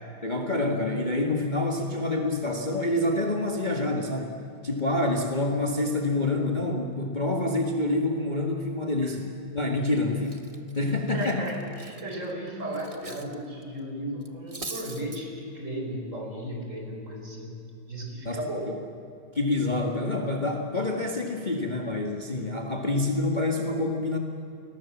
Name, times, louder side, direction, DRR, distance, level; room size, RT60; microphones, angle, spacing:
voice 1, 0.2-4.4 4.6-10.4 10.8-11.5 18.2-18.4 19.3-24.2, left 2 dB, 25° left, 2 dB, 1.9 m, -27 dB
Cutlery silverware, 9.9-10.0 10.2-13.3 13.6-13.8 14.2-15.2, right 3 dB, 20° right, 1.1 m, -42 dB
voice 2, 11.1-17.6 17.9-18.7, right 1 dB, 40° right, 1 dB, 5.1 m, -35 dB
29.5 x 22.0 x 7.4 m, 2.7 s
omnidirectional pair, 2.1 m